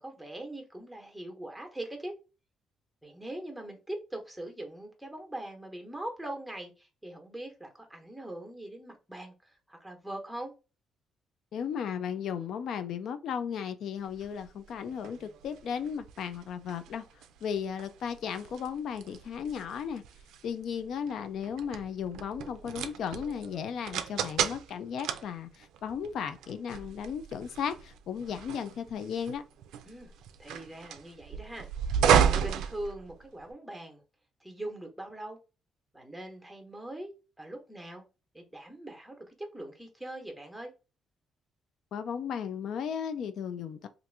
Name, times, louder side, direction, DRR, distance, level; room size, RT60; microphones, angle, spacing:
voice 1, 0.0-2.1 3.0-10.5 29.9-30.1 30.4-31.7 32.3-34.0 34.4-35.4 35.9-37.1 37.4-38.0 38.3-40.7, right 1 dB, ahead, 1.0 m, -41 dB
voice 2, 11.5-17.1 17.4-20.0 20.4-29.4 41.9-43.9, left 7 dB, 70° left, 0.4 m, -35 dB
sound 1, 14.1-33.5, right 8 dB, 85° right, 0.3 m, -33 dB
2.9 x 2.5 x 3.3 m
cardioid pair, 90°, 0 cm